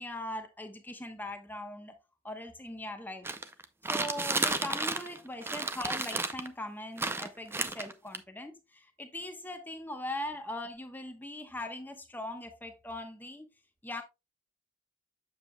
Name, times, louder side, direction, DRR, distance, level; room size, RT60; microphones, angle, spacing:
voice 1, 0.0-1.9 2.2-3.3 3.8-13.5 13.8-14.0, left 1 dB, 10° left, 1.0 m, -40 dB
sound 1, 3.2-5.2 5.4-6.5 7.0-8.2, right 3 dB, 10° right, 0.4 m, -32 dB
8.1 x 7.2 x 2.2 m
head